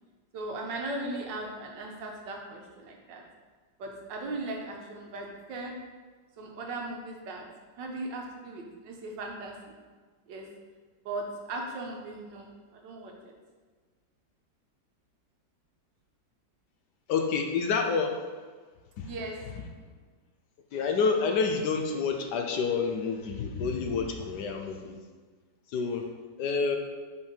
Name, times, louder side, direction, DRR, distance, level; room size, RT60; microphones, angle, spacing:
voice 1, 0.3-3.2 3.8-5.8 6.4-7.4 7.8-9.8 10.3-10.5 11.0-13.3 19.0-19.4, right 2 dB, 70° right, 1 dB, 1.5 m, -38 dB
voice 2, 17.1-18.2 19.0-19.1 20.7-25.0 25.7-26.0 26.4-26.8, left 5 dB, 70° left, 4 dB, 1.2 m, -28 dB
5.6 x 4.6 x 5.1 m, 1.4 s
omnidirectional pair, 2.1 m